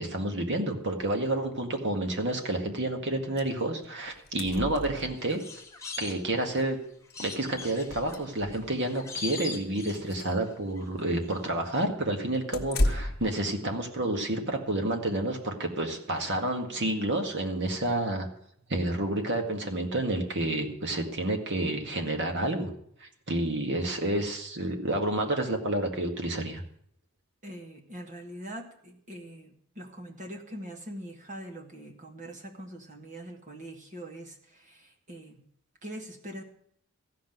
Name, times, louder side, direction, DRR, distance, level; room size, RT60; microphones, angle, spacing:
voice 1, 0.0-5.4 6.0-6.8 7.2-18.3 18.7-22.7 23.0-26.6, right 1 dB, 55° right, 4 dB, 2.0 m, -29 dB
sound 1, 3.4-3.5 3.8-3.9 4.1-5.4 6.7-6.8 7.1-7.2 7.7-8.7 9.2-9.4 9.8-10.4 12.5-13.4, left 1 dB, 45° left, 1.4 m, -32 dB
sound 2, 4.9-6.7 7.1-10.5 10.8-11.4 11.7-11.8, left 4 dB, 15° left, 1.5 m, -41 dB
voice 2, 27.4-35.4 35.8-36.4, right 1 dB, 35° right, 2 dB, 1.7 m, -43 dB
14.5 x 6.0 x 9.3 m, 0.66 s
head